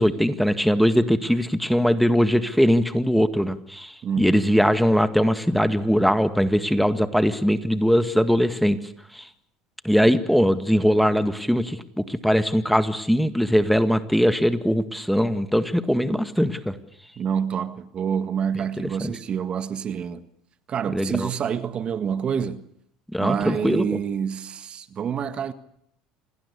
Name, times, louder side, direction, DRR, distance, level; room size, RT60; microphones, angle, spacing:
voice 1, 0.0-8.8 9.1-9.2 9.8-16.7 19.0-19.1 20.9-21.3 23.1-24.0, equal, ahead, 1.8 m, -21 dB
voice 2, 4.0-4.5 17.2-20.2 20.7-22.7 23.2-25.5, right 7 dB, 40° right, 1.7 m, -27 dB
27.5 x 19.5 x 8.3 m
hypercardioid pair, 80°, 3 cm